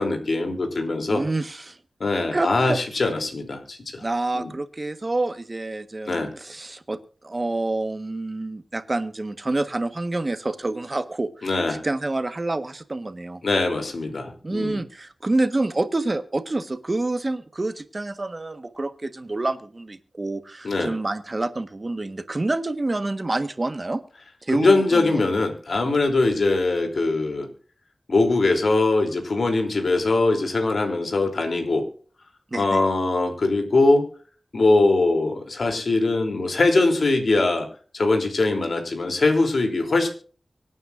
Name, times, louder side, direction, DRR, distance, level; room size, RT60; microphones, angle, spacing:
voice 1, 0.0-1.2 2.0-4.0 4.3-4.5 6.1-6.3 11.4-11.8 13.4-14.8 20.6-20.9 24.5-27.5 28.1-31.9 32.5-34.1 34.5-37.7 37.9-40.1, left 2 dB, 75° left, 5 dB, 3.1 m, -22 dB
voice 2, 1.1-1.8 2.3-2.8 4.0-13.4 14.4-24.0 24.4-25.2 32.5-32.8, right 2 dB, 40° right, 10 dB, 1.4 m, -27 dB
24.5 x 9.3 x 2.6 m, 0.42 s
wide cardioid pair, 60°, 0 cm